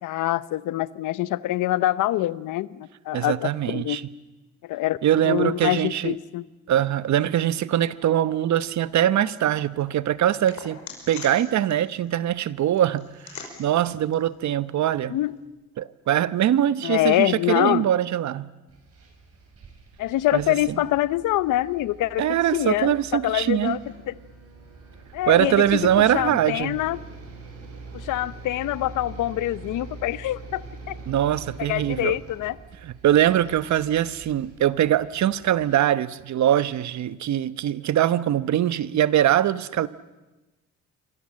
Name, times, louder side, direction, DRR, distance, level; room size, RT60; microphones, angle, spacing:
voice 1, 0.0-4.0 4.6-5.0 5.2-6.5 15.1-15.4 16.8-17.9 20.0-23.8 24.1-24.2 25.1-27.0 27.9-31.0 31.7-32.6, left 15 dB, 85° left, 0.9 m, -25 dB
voice 2, 3.1-4.0 5.0-6.2 6.7-10.8 11.1-15.2 15.8-18.5 20.3-20.8 22.2-23.8 25.3-26.8 31.1-32.2 32.8-39.9, right 11 dB, 65° right, 1.0 m, -22 dB
sound 1, 8.6-15.4, left 6 dB, 70° left, 5.6 m, -46 dB
sound 2, 18.7-35.7, right 3 dB, 50° right, 7.6 m, -44 dB
27.5 x 25.0 x 7.6 m
cardioid pair, 90°, 30 cm